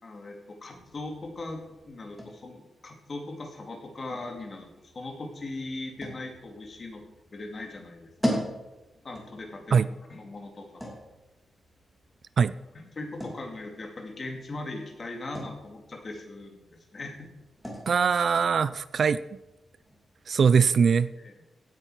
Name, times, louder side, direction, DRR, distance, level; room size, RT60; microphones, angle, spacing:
voice 1, 0.0-4.7 4.9-7.0 7.3-8.4 9.0-10.8 12.7-17.3 21.2-21.3, left 2 dB, 35° left, 3 dB, 2.3 m, -39 dB
sound 1, 0.7-20.3, equal, 5° left, 2.8 m, -41 dB
voice 2, 17.9-19.2 20.3-21.1, right 6 dB, 50° right, 16 dB, 0.3 m, -22 dB
16.5 x 8.7 x 4.9 m, 1.0 s
wide cardioid pair, 160°, 0 cm